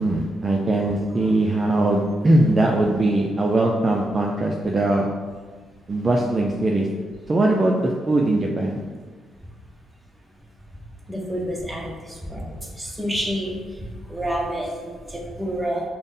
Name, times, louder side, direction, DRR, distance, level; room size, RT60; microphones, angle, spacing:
voice 1, 0.0-5.1 5.9-6.9 7.3-8.8, right 2 dB, 30° right, -1 dB, 0.3 m, -21 dB
voice 2, 11.1-13.6 14.1-15.8, equal, 10° right, -1 dB, 0.7 m, -28 dB
3.8 x 2.0 x 3.6 m, 1.5 s
cardioid pair, 90°, 0 cm